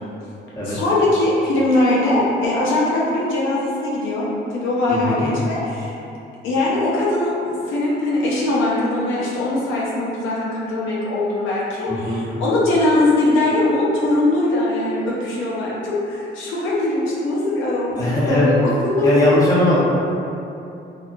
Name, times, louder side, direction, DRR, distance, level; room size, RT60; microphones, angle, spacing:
voice 1, 0.7-4.3 4.5-5.9 6.4-18.7 19.0-19.3, left 2 dB, 85° left, -6 dB, 0.6 m, -21 dB
voice 2, 4.9-5.3 11.9-12.2 17.9-18.5 19.0-19.8, left 1 dB, 15° left, -9 dB, 0.9 m, -19 dB
2.7 x 2.2 x 2.5 m, 2.7 s
cardioid pair, 90°, 20 cm